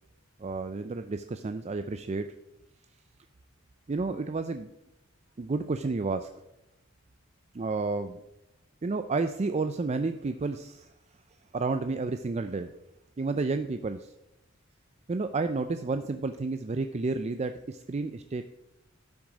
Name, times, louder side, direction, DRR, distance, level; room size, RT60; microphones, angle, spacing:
voice 1, 0.4-2.3 3.9-4.7 5.4-6.3 7.5-8.2 8.8-10.9 11.5-12.7 13.2-14.1 15.1-18.4, right 3 dB, 30° right, 9 dB, 0.4 m, -31 dB
12.5 x 6.2 x 4.9 m, 0.87 s
head